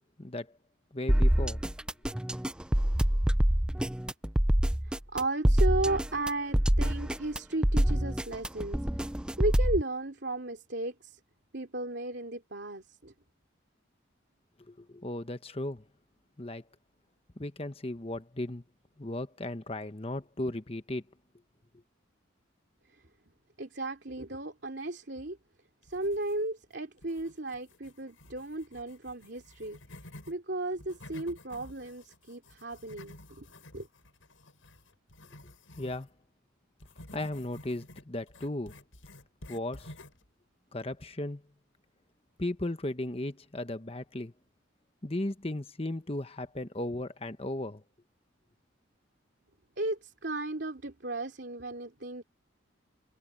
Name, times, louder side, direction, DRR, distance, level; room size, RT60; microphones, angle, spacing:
voice 1, 0.9-1.6 14.7-15.8 16.4-16.6 17.4-18.6 19.0-21.0 35.8-36.1 37.1-38.7 39.5-39.9 40.7-41.4 42.4-44.3 45.0-47.8, left 1 dB, 30° left, 1.1 m, -36 dB
sound 1, 1.1-9.8, equal, 5° right, 0.4 m, -26 dB
voice 2, 4.8-11.2 11.5-13.1 22.9-23.0 23.6-25.4 25.8-33.5 33.7-33.9 49.8-52.2, right 2 dB, 55° right, 3.0 m, -35 dB
sound 2, 25.8-26.6 27.0-30.3 30.7-36.1 36.8-40.3, left 1 dB, 80° left, 6.5 m, -51 dB
head